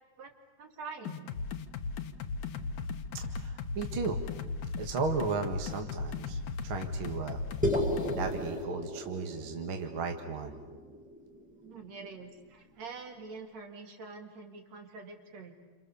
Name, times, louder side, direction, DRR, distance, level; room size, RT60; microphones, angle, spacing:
voice 1, 0.6-1.3 11.6-15.5, right 4 dB, 65° right, 4 dB, 3.5 m, -45 dB
sound 1, 1.1-8.3, left 4 dB, 80° left, 2.6 m, -37 dB
voice 2, 3.1-4.2 4.8-7.4 8.1-10.6, right 4 dB, 50° right, 4 dB, 2.3 m, -35 dB
sound 2, 7.6-12.0, equal, 5° right, 1.9 m, -35 dB
29.5 x 27.5 x 7.0 m, 1.2 s
omnidirectional pair, 3.4 m